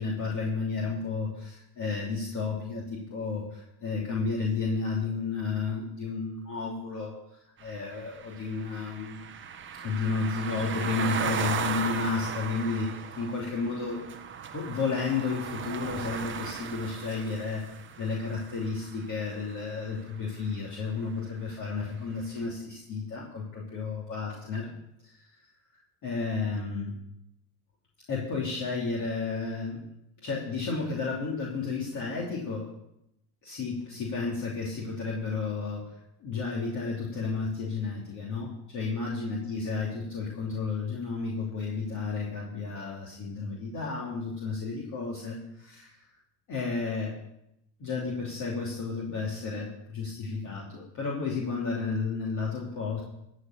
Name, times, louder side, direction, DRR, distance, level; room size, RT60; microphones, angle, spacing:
voice 1, 0.0-9.2 9.8-14.0 14.5-24.7 25.0-25.5 26.0-26.9 28.1-29.8 30.2-32.7 33.4-46.1 46.5-47.2 47.8-53.0, left 4 dB, 40° left, -4 dB, 3.1 m, -32 dB
sound 1, 7.6-19.7, right 7 dB, 25° right, 1.1 m, -37 dB
14.5 x 5.0 x 8.8 m, 0.82 s
hypercardioid pair, 95°, 47 cm